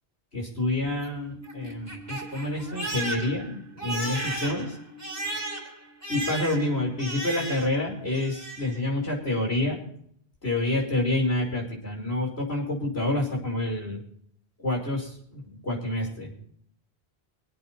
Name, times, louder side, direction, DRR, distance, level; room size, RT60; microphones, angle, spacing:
voice 1, 0.3-4.8 6.1-9.8 10.4-14.0 14.6-16.3, left 2 dB, 80° left, -1 dB, 6.1 m, -28 dB
Crying sobbing, 0.9-7.9 8.1-8.8, right 2 dB, 15° right, 3.0 m, -35 dB
25.5 x 8.8 x 4.5 m, 0.65 s
omnidirectional pair, 1.0 m